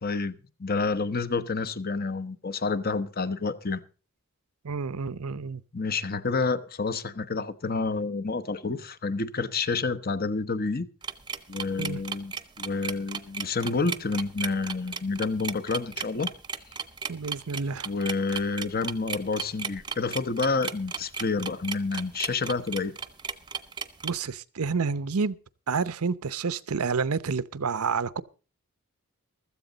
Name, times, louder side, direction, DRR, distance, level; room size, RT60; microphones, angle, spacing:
voice 1, 0.0-3.8 5.7-10.9 11.5-16.3 17.8-22.9, left 4 dB, 45° left, 0.9 m, -29 dB
voice 2, 4.6-5.6 11.8-12.0 17.1-17.9 24.0-25.4 25.7-28.2, right 5 dB, 75° right, 0.7 m, -29 dB
sound 1, 11.0-24.1, right 6 dB, 20° right, 0.8 m, -35 dB
15.5 x 13.5 x 3.9 m
head